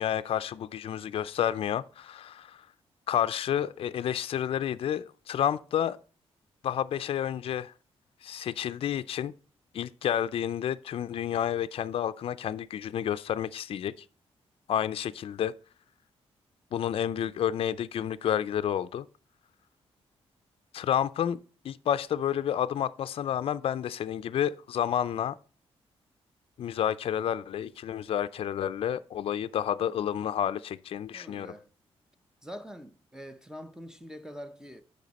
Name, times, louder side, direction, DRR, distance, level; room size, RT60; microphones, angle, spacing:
voice 1, 0.0-2.7 3.1-6.0 6.6-7.7 8.2-9.3 9.7-13.9 14.7-15.5 16.7-19.1 20.7-21.4 21.6-25.4 26.6-31.5, left 10 dB, 60° left, 0.4 m, -30 dB
voice 2, 31.1-31.7 32.4-34.8, equal, 5° right, 0.7 m, -44 dB
9.1 x 5.3 x 4.1 m
cardioid pair, 115°, 11 cm